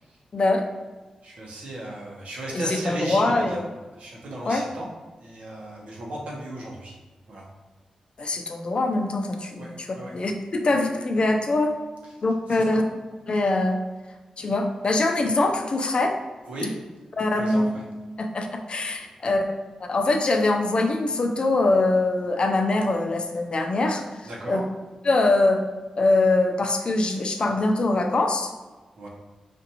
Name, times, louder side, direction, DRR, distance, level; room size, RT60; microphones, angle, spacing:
voice 1, 0.3-0.6 2.5-3.6 4.5-4.6 8.2-9.7 10.1-11.8 12.2-12.8 13.3-13.8 14.4-16.2 17.2-17.7 18.2-19.6 19.9-24.6 25.0-25.6 26.0-28.5, left 2 dB, 50° left, 3 dB, 0.5 m, -23 dB
voice 2, 1.2-3.6 3.9-4.9 5.2-6.9 7.3-7.5 9.5-10.2 12.5-12.8 16.5-16.7 17.3-17.8 24.2-24.6 29.0-29.1, right 1 dB, 80° right, -4 dB, 1.1 m, -35 dB
5.0 x 2.6 x 2.8 m, 1.2 s
cardioid pair, 70°, 2 cm